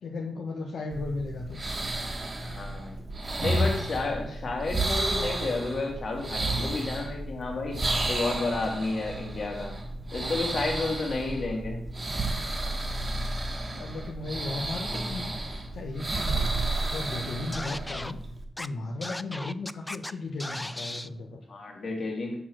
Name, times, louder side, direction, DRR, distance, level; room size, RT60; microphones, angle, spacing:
voice 1, 0.0-1.6 13.7-16.5 16.8-18.2 18.6-21.4, left 3 dB, 80° left, 0 dB, 1.2 m, -36 dB
sound 1, 0.9-18.4, right 2 dB, 30° right, 1.3 m, -32 dB
voice 2, 2.4-3.0 3.4-7.8 8.1-9.7 10.1-11.8 21.5-22.4, left 3 dB, 50° left, 1 dB, 2.3 m, -31 dB
Scratching (performance technique), 17.5-18.1 18.6-18.7 19.0-20.1 20.4-21.1, left 1 dB, 10° left, 0.3 m, -36 dB
7.3 x 6.3 x 6.2 m, 0.68 s
wide cardioid pair, 145°, 0 cm